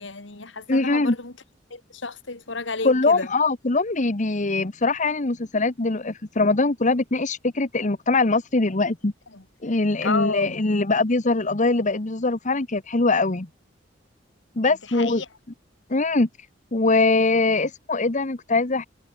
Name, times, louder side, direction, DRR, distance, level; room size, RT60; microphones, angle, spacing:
voice 1, 0.0-1.3 1.7-3.3 9.3-9.4 10.0-10.6 14.6-15.3, left 3 dB, 75° left, 2.6 m, -31 dB
voice 2, 0.7-1.1 2.8-9.1 9.6-13.5 14.6-15.2 15.9-16.3 16.7-18.9, left 3 dB, 40° left, 1.2 m, -22 dB
head